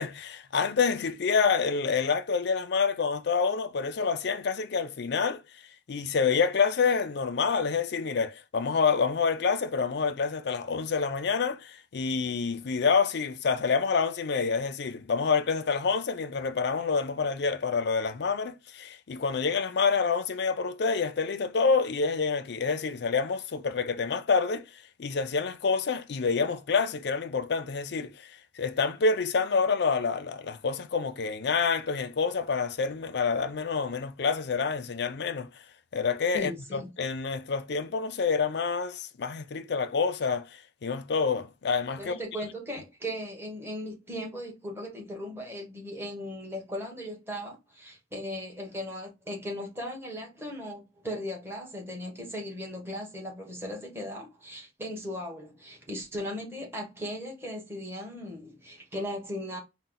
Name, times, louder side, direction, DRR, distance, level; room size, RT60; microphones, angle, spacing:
voice 1, 0.0-5.4 5.9-35.5 35.9-42.2, left 5 dB, 60° left, 0.5 m, -27 dB
voice 2, 36.3-36.9 42.0-59.6, equal, 15° right, 1.3 m, -37 dB
4.2 x 2.1 x 3.9 m
head